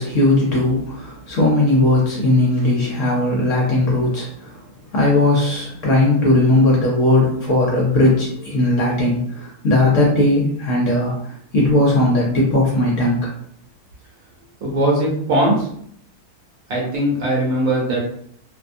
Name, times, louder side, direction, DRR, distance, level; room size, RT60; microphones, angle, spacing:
voice 1, 0.0-4.6 4.9-13.3, left 2 dB, 60° left, -3 dB, 0.9 m, -18 dB
voice 2, 14.6-15.6 16.7-18.0, right 1 dB, 60° right, -3 dB, 1.1 m, -19 dB
2.7 x 2.1 x 2.5 m, 0.65 s
omnidirectional pair, 1.7 m